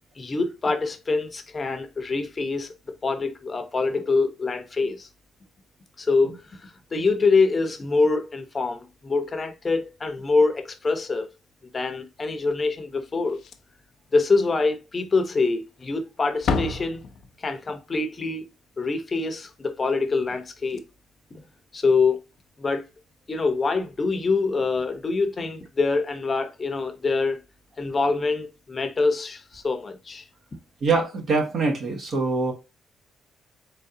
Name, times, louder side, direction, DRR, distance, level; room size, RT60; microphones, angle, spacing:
voice 1, 0.2-5.1 6.0-11.3 11.7-13.4 14.1-17.0 17.4-18.5 18.8-20.8 21.3-21.4 21.7-22.2 22.6-22.9 23.3-27.4 27.8-30.2, left 3 dB, 30° left, 1.0 m, -25 dB
Slam, 13.2-13.9 14.2-14.3 14.8-14.9 15.7-16.0 16.3-17.6 20.3-20.4 20.6-20.8 22.3-22.5, left 4 dB, 65° left, 0.7 m, -31 dB
voice 2, 30.8-32.5, right 3 dB, 55° right, 1.7 m, -24 dB
3.9 x 3.8 x 2.7 m
cardioid pair, 100°, 0 cm